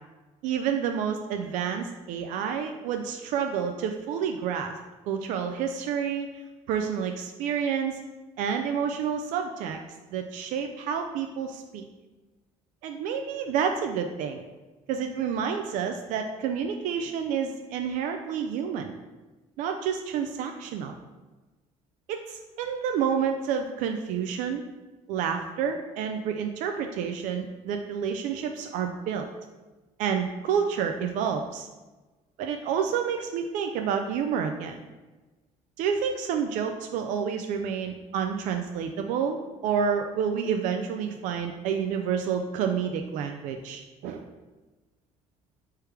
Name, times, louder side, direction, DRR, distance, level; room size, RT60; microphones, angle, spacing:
voice 1, 0.4-4.7 5.1-6.3 6.7-8.0 8.4-9.8 10.1-11.8 12.8-14.4 14.9-18.9 19.6-21.0 22.1-24.6 25.1-29.3 30.0-31.7 32.4-34.8 35.8-44.3, right 7 dB, 80° right, 5 dB, 0.4 m, -29 dB
3.4 x 3.2 x 4.7 m, 1.2 s
cardioid pair, 105°, 13 cm